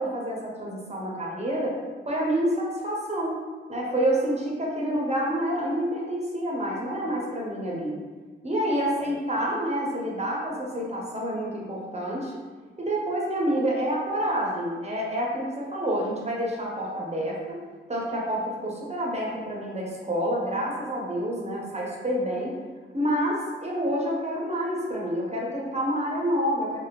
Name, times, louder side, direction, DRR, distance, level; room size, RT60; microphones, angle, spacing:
voice 1, 0.0-1.7 2.1-3.4 3.7-7.9 8.4-12.3 12.8-17.6 17.9-22.5 22.9-26.8, equal, 30° right, -4 dB, 0.9 m, -28 dB
2.4 x 2.4 x 3.4 m, 1.4 s
cardioid pair, 50°, 21 cm